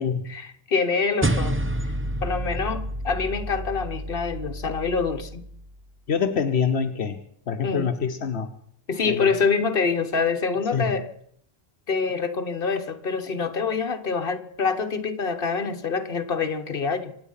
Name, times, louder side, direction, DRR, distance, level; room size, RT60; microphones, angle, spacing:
voice 1, 0.3-1.6 2.2-5.4 7.6-7.9 8.9-11.1 11.9-17.1, left 5 dB, 60° left, 7 dB, 1.5 m, -26 dB
sound 1, 1.2-5.9, right 1 dB, 15° right, 0.6 m, -29 dB
voice 2, 6.1-7.2 7.5-8.5 9.0-9.3 10.7-10.9 13.3-13.4, left 6 dB, 80° left, 7 dB, 1.2 m, -25 dB
26.0 x 9.1 x 5.7 m, 0.66 s
omnidirectional pair, 1.1 m